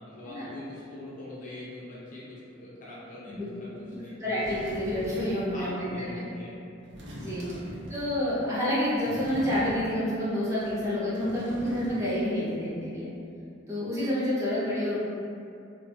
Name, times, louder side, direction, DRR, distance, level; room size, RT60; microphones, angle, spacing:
voice 1, 0.0-4.1 5.5-6.5 6.8-6.9 7.4-7.6, left 1 dB, 45° left, -8 dB, 0.8 m, -43 dB
sound 1, 3.9-4.0 4.4-5.5 6.8-8.2 9.0-10.1 10.5-12.2 12.5-12.6, equal, 65° right, 0.5 m, -40 dB
voice 2, 4.2-6.1 7.1-7.4 7.9-13.1 13.7-15.0, left 1 dB, 15° right, -10 dB, 0.7 m, -29 dB
2.5 x 2.3 x 2.6 m, 2.5 s
head